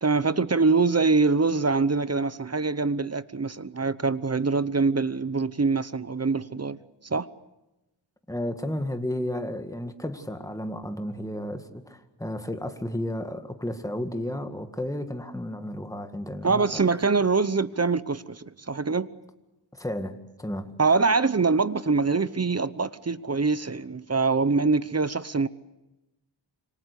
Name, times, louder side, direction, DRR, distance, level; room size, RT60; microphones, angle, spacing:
voice 1, 0.0-6.8 7.0-7.3 16.4-19.1 20.8-25.5, right 4 dB, 35° right, 0.9 m, -24 dB
voice 2, 8.3-16.8 19.7-20.7, left 1 dB, 5° left, 2.0 m, -33 dB
27.0 x 25.0 x 8.3 m
wide cardioid pair, 85°, 45 cm